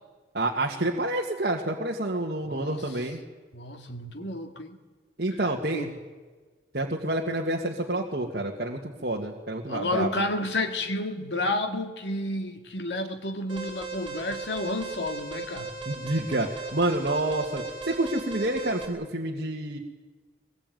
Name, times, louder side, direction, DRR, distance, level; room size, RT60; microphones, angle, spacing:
voice 1, 0.3-3.2 5.2-5.9 6.7-10.2 15.9-19.8, right 1 dB, 60° right, 2.1 m, -28 dB
voice 2, 2.5-2.8 3.5-4.8 5.7-5.9 9.7-15.7, left 1 dB, 90° left, 2.3 m, -31 dB
Alarm, 13.5-18.9, right 3 dB, 30° right, 4.2 m, -37 dB
23.0 x 21.0 x 9.3 m
head